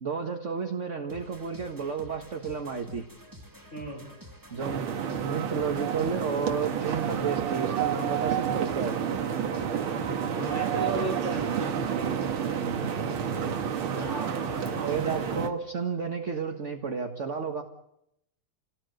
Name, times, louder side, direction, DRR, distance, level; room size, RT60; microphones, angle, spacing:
voice 1, 0.0-3.1 4.5-4.9 5.2-9.0 12.6-12.8 14.9-17.6, right 6 dB, 35° right, 4 dB, 1.7 m, -32 dB
sound 1, 1.1-15.3, equal, 10° right, 2.4 m, -49 dB
voice 2, 3.7-4.1 10.4-12.1 13.9-15.3, right 2 dB, 35° left, -2 dB, 5.9 m, -36 dB
sound 2, 4.6-15.5, right 8 dB, 80° right, 2.3 m, -30 dB
28.5 x 18.5 x 8.0 m, 0.82 s
omnidirectional pair, 2.3 m